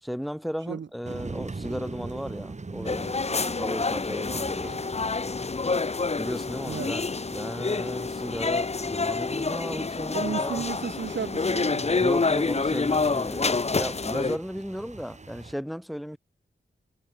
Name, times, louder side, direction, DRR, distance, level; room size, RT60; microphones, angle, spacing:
voice 1, 0.0-4.8 6.1-10.6 12.0-16.2, equal, ahead, 2.9 m, -35 dB
sound 1, 1.0-15.5, right 3 dB, 35° right, 4.4 m, -43 dB
sound 2, 2.8-14.4, left 4 dB, 35° left, 1.0 m, -27 dB
voice 2, 10.1-12.2, right 6 dB, 70° right, 1.3 m, -34 dB
wide cardioid pair, 115°, 19 cm